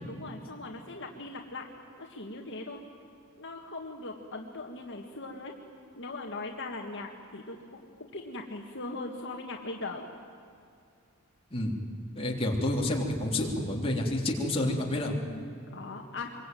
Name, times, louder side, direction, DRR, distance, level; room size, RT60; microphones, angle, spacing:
voice 1, 0.1-1.6 2.0-2.8 3.4-5.5 5.9-10.0 15.2-15.4 15.7-16.3, left 2 dB, 60° left, 1 dB, 1.8 m, -40 dB
voice 2, 12.2-15.1, left 1 dB, 25° left, -1 dB, 3.4 m, -29 dB
25.5 x 22.5 x 9.3 m, 2.4 s
head